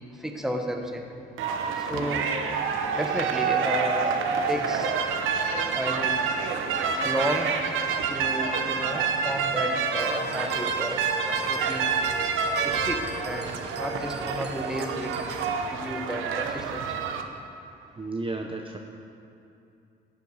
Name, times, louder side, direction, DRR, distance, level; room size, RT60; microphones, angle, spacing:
voice 1, 0.2-1.2 1.9-2.3 3.0-4.9 5.7-6.3 7.0-7.6 8.1-11.0 11.5-11.9 12.4-15.1 15.7-16.8, equal, ahead, 3 dB, 1.2 m, -32 dB
sound 1, 1.4-17.2, right 5 dB, 85° right, 0.9 m, -28 dB
sound 2, 10.0-15.5, right 3 dB, 55° right, 1.1 m, -39 dB
voice 2, 18.0-18.8, right 3 dB, 25° right, 2 dB, 0.8 m, -32 dB
14.5 x 8.0 x 4.9 m, 2.7 s
cardioid pair, 90°, 20 cm